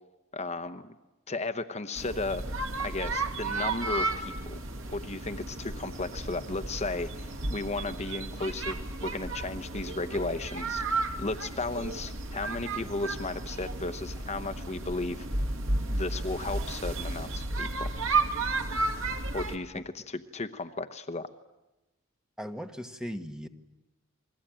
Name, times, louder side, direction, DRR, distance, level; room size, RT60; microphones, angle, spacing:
voice 1, 0.3-0.9 1.3-2.4 2.8-4.6 4.9-15.3 15.9-17.9 19.3-21.3, left 3 dB, 35° left, 9 dB, 0.9 m, -35 dB
sound 1, 2.0-19.6, right 2 dB, 75° right, 2.4 m, -33 dB
voice 2, 22.4-23.5, equal, 5° right, 6 dB, 1.4 m, -38 dB
29.0 x 22.0 x 8.9 m, 1.0 s
head